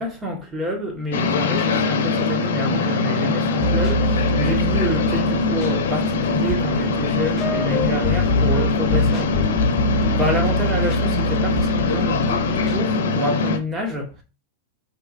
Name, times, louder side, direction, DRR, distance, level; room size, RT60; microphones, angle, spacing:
voice 1, 0.0-14.2, equal, 20° right, 1.2 m, -28 dB
sound 1, 1.1-13.6, left 4 dB, 75° left, 0.7 m, -22 dB
sound 2, 3.6-12.8, left 1 dB, 25° left, 0.7 m, -25 dB
5.0 x 2.9 x 2.4 m
hypercardioid pair, 125°, 0 cm